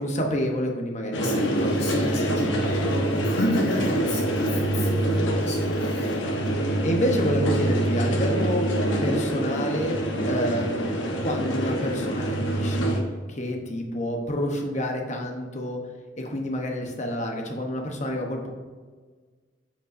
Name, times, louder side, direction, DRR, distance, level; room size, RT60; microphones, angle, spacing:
voice 1, 0.0-1.9 6.8-8.7 9.0-9.9 10.2-13.0 13.3-15.8 16.2-18.5, equal, 40° left, 2 dB, 0.9 m, -28 dB
sound 1, 1.1-13.0, right 1 dB, 80° left, 1.0 m, -25 dB
voice 2, 1.2-6.2, left 1 dB, 60° left, 0 dB, 0.6 m, -31 dB
7.9 x 5.2 x 2.6 m, 1.4 s
head